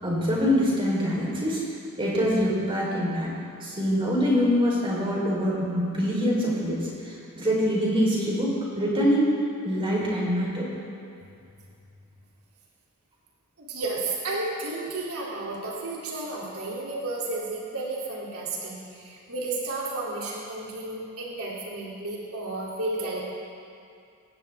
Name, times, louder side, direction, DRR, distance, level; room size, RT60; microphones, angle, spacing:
voice 1, 0.0-1.6 2.0-3.3 3.6-9.3 9.6-10.7, equal, 25° right, -4 dB, 3.8 m, -24 dB
voice 2, 13.6-23.2, right 2 dB, 85° right, -4 dB, 3.0 m, -32 dB
18.5 x 16.0 x 3.5 m, 2.4 s
head